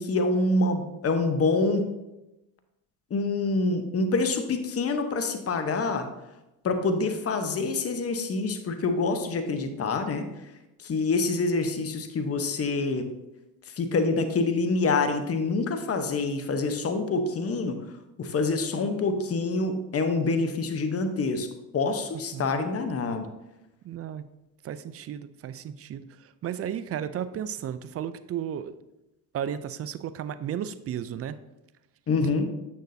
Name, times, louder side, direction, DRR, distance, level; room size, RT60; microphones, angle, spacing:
voice 1, 0.0-1.9 3.1-6.1 6.6-10.2 10.8-13.1 13.8-17.8 18.2-21.5 21.7-23.3 32.1-32.5, left 3 dB, 30° left, 7 dB, 0.9 m, -26 dB
voice 2, 23.8-24.2 24.6-28.8 29.3-31.4, right 9 dB, 35° right, 13 dB, 0.4 m, -34 dB
8.1 x 6.5 x 2.7 m, 0.95 s
supercardioid pair, 75°, 48 cm